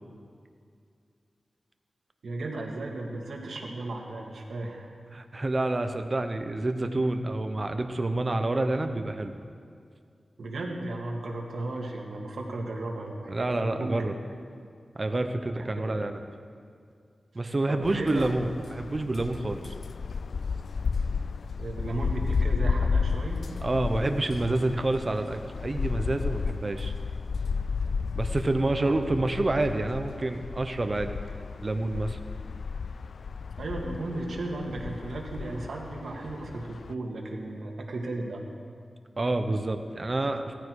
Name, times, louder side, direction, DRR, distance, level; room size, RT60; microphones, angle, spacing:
voice 1, 2.2-4.9 10.4-13.9 15.4-16.0 17.7-18.3 21.6-23.4 28.8-29.0 33.6-38.4, right 2 dB, 85° right, 0 dB, 2.2 m, -35 dB
voice 2, 5.1-9.3 13.3-14.2 14.9-16.2 17.3-19.7 23.6-26.9 28.1-31.3 31.6-32.2 39.2-40.5, right 2 dB, 35° right, 7 dB, 1.0 m, -28 dB
sound 1, 17.8-36.9, left 5 dB, 70° left, 0.3 m, -32 dB
17.0 x 14.5 x 4.9 m, 2.3 s
wide cardioid pair, 105°, 0 cm